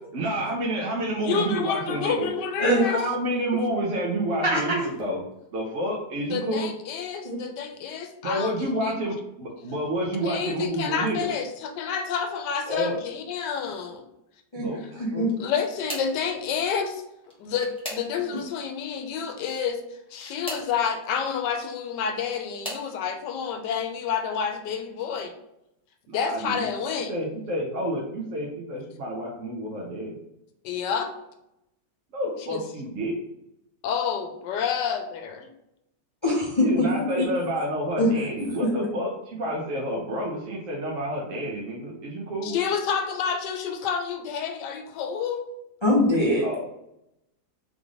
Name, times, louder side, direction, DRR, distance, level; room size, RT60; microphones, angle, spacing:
voice 1, 0.1-2.3 2.8-5.2 5.5-6.7 8.2-11.3 12.7-12.9 14.6-14.8 15.1-15.3 26.1-26.7 27.1-30.2 32.1-33.1 36.6-42.6 46.4-46.7, right 1 dB, 55° right, -3 dB, 1.0 m, -29 dB
voice 2, 1.2-3.1 6.3-8.9 10.2-14.0 15.4-17.0 17.4-25.3 26.1-27.1 30.6-31.1 32.5-32.6 33.8-35.5 37.0-37.1 42.4-45.4, left 7 dB, 75° left, 6 dB, 1.2 m, -29 dB
voice 3, 4.4-4.8 7.2-7.4 14.5-15.3 36.2-36.6 37.2-37.3 38.0-38.1 45.8-46.4, equal, 45° left, -4 dB, 0.3 m, -22 dB
sound 1, 15.2-16.2 17.2-18.4 20.0-20.7 21.8-22.9 23.6-24.0 24.4-24.6 25.9-26.0, equal, 5° left, 0.9 m, -39 dB
3.8 x 3.3 x 3.6 m, 0.84 s
omnidirectional pair, 1.9 m